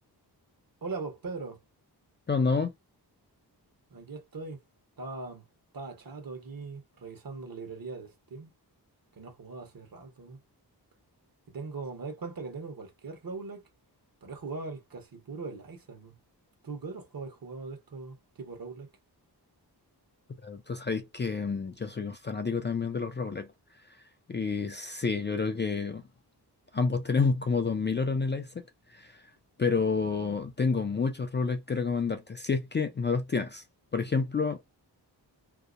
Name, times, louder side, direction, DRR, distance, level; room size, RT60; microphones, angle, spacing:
voice 1, 0.8-1.6 3.9-4.6 5.0-5.4 5.7-8.5 9.1-10.4 11.5-13.6 14.2-16.2 16.6-18.9, right 4 dB, 55° right, 1.1 m, -40 dB
voice 2, 2.3-2.7 20.4-23.5 24.3-26.0 26.7-28.6 28.9-29.2 29.6-33.6 33.9-34.6, left 4 dB, 30° left, 0.4 m, -29 dB
2.8 x 2.1 x 2.4 m
wide cardioid pair, 95°, 41 cm